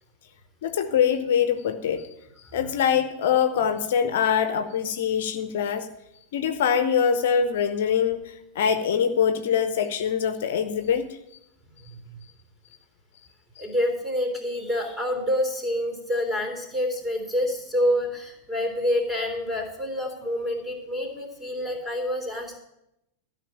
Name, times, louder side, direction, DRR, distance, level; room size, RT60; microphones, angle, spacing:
voice 1, 0.6-2.1 2.5-5.9 6.3-11.0 13.6-13.7, left 7 dB, 55° left, 9 dB, 0.9 m, -24 dB
voice 2, 13.6-22.6, left 1 dB, 10° right, 3 dB, 3.4 m, -27 dB
13.5 x 5.9 x 8.5 m, 0.86 s
figure-of-eight pair, 90°, 0 cm